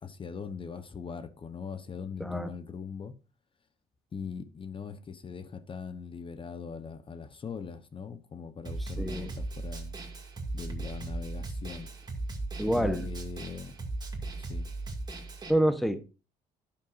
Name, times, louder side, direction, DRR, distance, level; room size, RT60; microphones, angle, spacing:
voice 1, 0.0-3.1 4.1-9.9 10.5-11.9 12.7-13.8 14.4-14.7, left 6 dB, 30° left, 0.9 m, -41 dB
Snare drum, 8.6-15.5, right 2 dB, 25° right, 2.1 m, -37 dB
voice 2, 8.8-9.3 12.6-13.1 15.5-16.0, equal, ahead, 0.9 m, -27 dB
12.0 x 8.7 x 2.5 m
cardioid pair, 110°, 17 cm